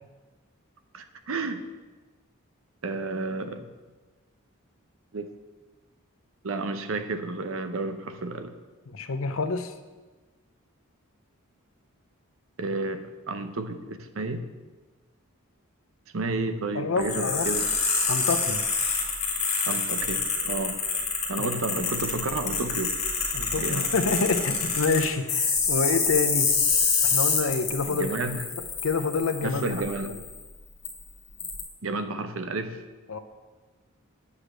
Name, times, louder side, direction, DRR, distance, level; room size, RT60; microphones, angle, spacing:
voice 1, 0.9-1.7 2.8-3.7 5.1-5.3 6.4-8.5 12.6-14.4 16.1-17.6 19.6-20.8 21.3-23.0 23.6-23.9 27.9-28.5 29.4-30.2 31.8-32.8, right 3 dB, 65° right, 9 dB, 0.7 m, -31 dB
voice 2, 8.9-9.7 16.7-17.5 18.1-18.6 21.4-21.6 23.3-26.5 27.0-28.4 28.8-29.8 33.1-33.2, left 4 dB, 70° left, 10 dB, 0.6 m, -27 dB
sound 1, 17.0-30.4 30.9-31.0 31.4-31.6, left 5 dB, 30° left, 2.1 m, -27 dB
8.4 x 5.0 x 7.4 m, 1.3 s
head